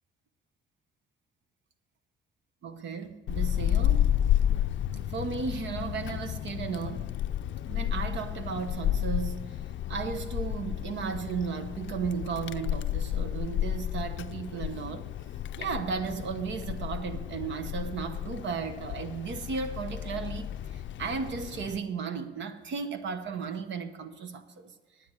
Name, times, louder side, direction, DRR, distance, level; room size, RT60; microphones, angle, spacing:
voice 1, 2.6-4.1 5.1-7.2 7.7-9.6 9.9-15.1 15.6-24.7, right 5 dB, 70° right, 1.0 m, -35 dB
Wind, 3.3-21.8, left 11 dB, 70° left, 0.5 m, -32 dB
9.4 x 9.3 x 6.3 m
cardioid pair, 90°, 20 cm